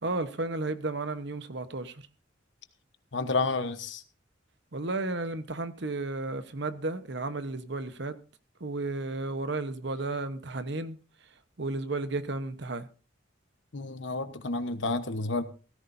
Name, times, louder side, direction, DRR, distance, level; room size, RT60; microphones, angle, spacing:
voice 1, 0.0-2.0 4.7-8.2 8.6-11.0 11.6-12.9, right 2 dB, 60° right, 1.1 m, -33 dB
voice 2, 3.1-4.0 13.7-15.4, left 3 dB, 70° left, 1.2 m, -30 dB
17.0 x 14.5 x 2.7 m
head